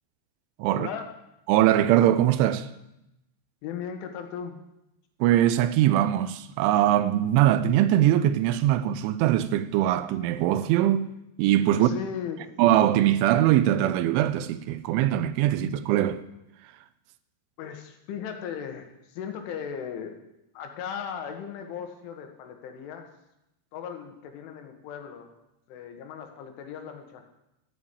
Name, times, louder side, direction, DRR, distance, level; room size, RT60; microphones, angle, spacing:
voice 1, 0.7-1.1 3.6-4.6 11.8-12.6 17.6-20.2 20.6-23.1 23.7-25.3 25.7-27.3, left 7 dB, 80° left, 4.0 m, -37 dB
voice 2, 1.5-2.7 5.2-11.1 11.4-11.9 12.6-16.2, right 12 dB, 80° right, 3.0 m, -22 dB
14.0 x 11.0 x 8.7 m
omnidirectional pair, 5.6 m